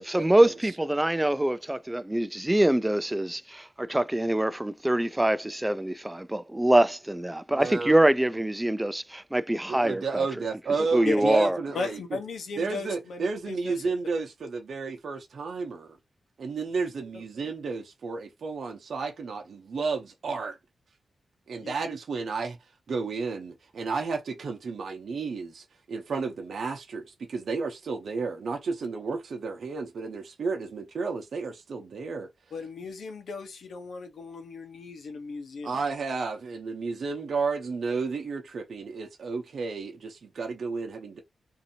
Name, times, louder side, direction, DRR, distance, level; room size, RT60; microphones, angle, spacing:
voice 1, 0.0-10.3 10.9-11.6, right 1 dB, 10° right, 0.3 m, -24 dB
voice 2, 7.5-8.0 9.7-12.0 12.6-16.0 16.4-20.6 21.5-22.6 22.9-32.3 35.6-41.2, right 4 dB, 65° right, 0.7 m, -32 dB
voice 3, 11.7-13.8 21.6-21.7 32.5-35.8, left 4 dB, 80° left, 0.9 m, -36 dB
2.7 x 2.6 x 2.7 m
wide cardioid pair, 95°, 0 cm